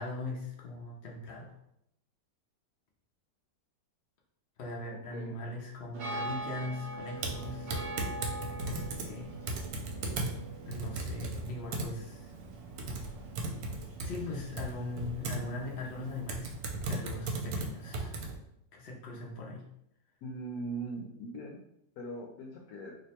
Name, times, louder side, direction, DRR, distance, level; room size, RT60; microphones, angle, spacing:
voice 1, 0.0-1.6 4.6-8.2 8.6-9.3 10.6-12.3 14.0-16.5 16.9-18.2 18.7-19.6, left 2 dB, 90° left, -1 dB, 0.5 m, -40 dB
sound 1, 5.9-16.2, right 1 dB, 65° right, 0.7 m, -44 dB
Typing, 7.2-18.4, right 2 dB, 80° right, 1.2 m, -37 dB
voice 2, 20.2-21.6 22.0-23.0, right 2 dB, 70° left, -1 dB, 1.0 m, -40 dB
2.9 x 2.1 x 4.1 m, 0.76 s
omnidirectional pair, 1.9 m